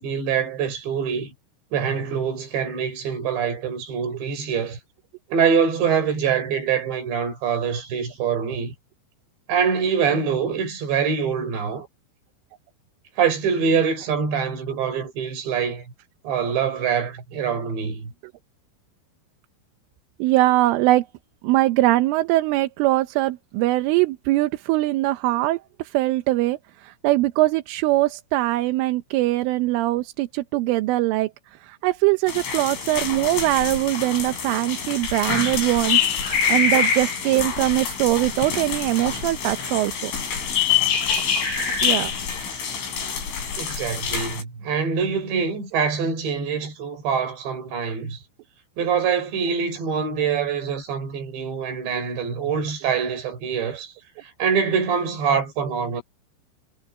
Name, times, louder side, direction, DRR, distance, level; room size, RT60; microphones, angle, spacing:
voice 1, 0.0-1.3 1.7-4.8 5.3-8.7 9.5-11.9 13.2-15.9 16.2-18.1 43.6-48.2 48.8-53.9 54.2-56.0, right 6 dB, 60° right, 7.3 m, -24 dB
voice 2, 20.2-21.1 21.4-31.3 31.6-40.1 41.8-42.1, right 17 dB, 80° right, 3.4 m, -22 dB
sound 1, 32.3-44.4, left 7 dB, 65° left, 8.4 m, -25 dB
omnidirectional pair, 6.0 m